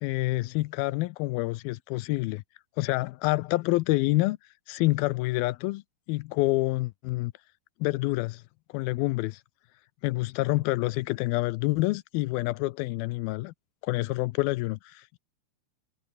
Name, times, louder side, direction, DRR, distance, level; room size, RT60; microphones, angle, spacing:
voice 1, 0.0-2.4 2.8-4.4 4.7-5.8 6.1-7.3 7.8-8.4 8.7-9.4 10.0-13.5 13.8-15.2, left 21 dB, 90° left, 2.1 m, -27 dB
omnidirectional pair, 4.9 m